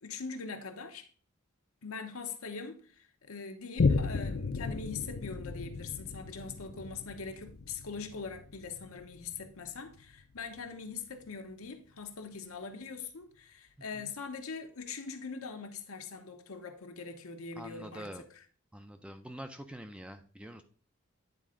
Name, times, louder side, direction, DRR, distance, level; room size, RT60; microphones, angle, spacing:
voice 1, 0.0-1.1 1.8-18.5, left 5 dB, 80° left, 0.9 m, -42 dB
Boom, 3.8-10.7 11.2-11.3, left 4 dB, 55° left, 0.5 m, -34 dB
voice 2, 17.6-18.2 18.7-20.6, right 1 dB, 5° right, 0.4 m, -45 dB
9.2 x 4.2 x 3.7 m
head